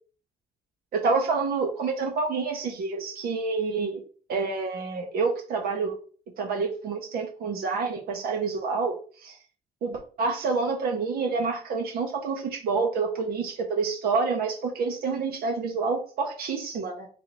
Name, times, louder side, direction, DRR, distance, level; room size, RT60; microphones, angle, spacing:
voice 1, 0.9-4.0 4.3-6.0 6.4-9.0 9.2-9.4 9.8-17.1, right 4 dB, 65° right, 2 dB, 0.9 m, -28 dB
3.2 x 3.0 x 4.0 m, 0.41 s
cardioid pair, 110°, 17 cm